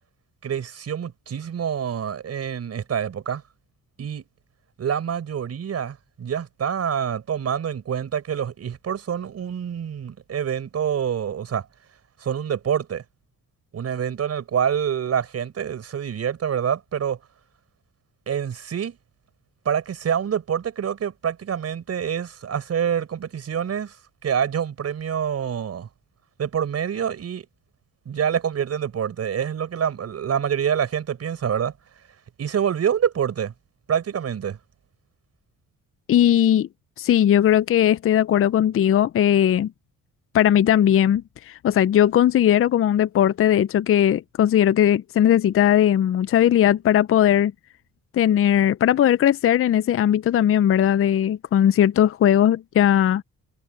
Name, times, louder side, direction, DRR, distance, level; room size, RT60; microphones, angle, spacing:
voice 1, 0.4-3.4 4.0-4.3 4.8-11.7 12.2-13.0 13.7-17.2 18.3-19.0 19.7-24.0 24.2-25.9 26.4-27.5 28.1-31.7 32.4-33.5 33.9-34.6, right 8 dB, 55° right, 5.6 m, -26 dB
voice 2, 36.1-36.7 37.0-39.7 40.3-47.5 48.1-53.2, left 10 dB, 45° left, 0.6 m, -18 dB
cardioid pair, 90°, 30 cm